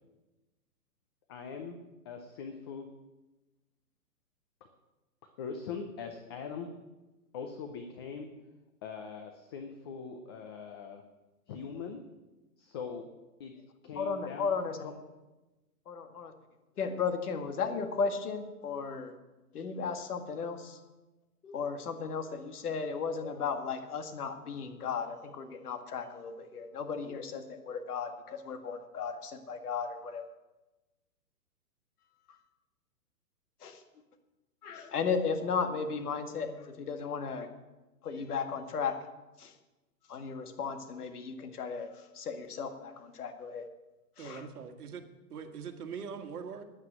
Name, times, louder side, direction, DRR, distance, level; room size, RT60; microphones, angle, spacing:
voice 1, 1.3-1.8 2.0-2.9 5.4-6.7 7.3-8.3 8.8-11.0 11.5-12.0 12.6-13.0 13.4-13.5 13.8-14.5 14.8-14.9, left 6 dB, 15° left, 5 dB, 0.5 m, -41 dB
voice 2, 14.0-14.8 15.9-16.3 16.8-19.1 19.5-20.8 21.4-30.3 33.6-33.8 34.6-37.5 38.0-39.0 39.4-39.5 40.1-43.6 44.2-44.4, left 5 dB, 65° left, 6 dB, 2.0 m, -35 dB
voice 3, 44.2-45.0 45.3-46.6, right 6 dB, 65° right, 6 dB, 1.9 m, -42 dB
9.8 x 9.2 x 9.0 m, 1.1 s
hypercardioid pair, 140°, 48 cm